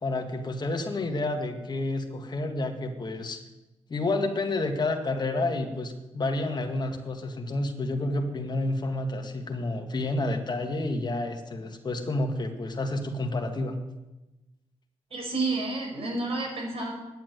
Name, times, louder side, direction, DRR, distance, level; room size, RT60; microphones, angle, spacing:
voice 1, 0.0-3.4 3.9-13.8, left 2 dB, 40° left, 4 dB, 1.9 m, -29 dB
voice 2, 15.1-16.9, right 2 dB, 60° right, 1 dB, 5.1 m, -30 dB
10.5 x 8.9 x 9.4 m, 1.1 s
cardioid pair, 80°, 11 cm